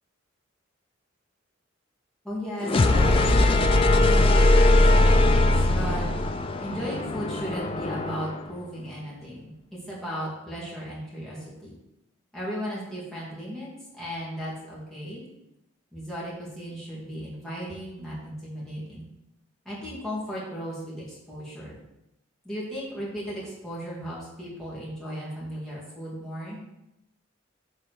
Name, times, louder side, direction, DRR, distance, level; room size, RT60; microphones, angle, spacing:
voice 1, 2.2-6.0 6.6-9.5 9.9-11.7 12.3-15.3 15.9-19.1 19.7-21.8 22.4-26.6, equal, ahead, -8 dB, 1.9 m, -36 dB
sound 1, 2.6-8.5, left 2 dB, 25° left, 0.3 m, -20 dB
6.8 x 3.7 x 4.5 m, 0.89 s
head